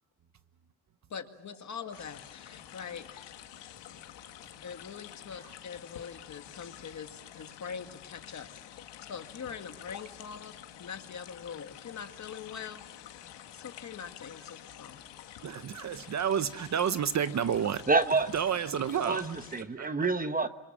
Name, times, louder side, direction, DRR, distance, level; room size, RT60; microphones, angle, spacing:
voice 1, 1.1-3.3 4.6-8.5 9.1-12.8 13.5-15.0, left 6 dB, 45° left, 2.0 m, -43 dB
sound 1, 1.9-19.6, left 11 dB, 90° left, 1.9 m, -49 dB
voice 2, 15.4-17.8 18.3-19.2 19.8-19.9, right 8 dB, 40° right, 0.9 m, -30 dB
voice 3, 17.9-18.3 18.9-20.5, right 3 dB, 20° right, 1.1 m, -28 dB
29.0 x 25.5 x 7.3 m
cardioid pair, 140°, 41 cm